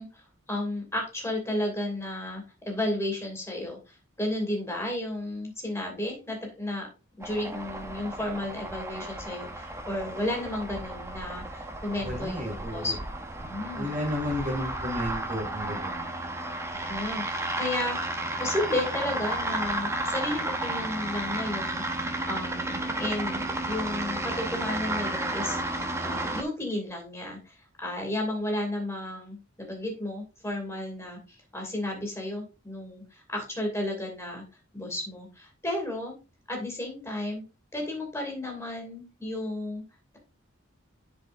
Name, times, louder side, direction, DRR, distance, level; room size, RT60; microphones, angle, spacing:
voice 1, 0.0-6.9 7.2-13.1 13.4-14.0 16.7-18.0 18.4-25.6 26.0-34.4 34.7-36.1 36.5-37.4 37.7-39.8, left 1 dB, 15° left, 1 dB, 2.6 m, -33 dB
sound 1, 7.2-26.4, right 1 dB, 15° right, 0.7 m, -33 dB
voice 2, 12.0-13.0 13.8-16.0, left 1 dB, 40° right, 0 dB, 2.8 m, -32 dB
10.5 x 5.0 x 2.6 m, 0.30 s
head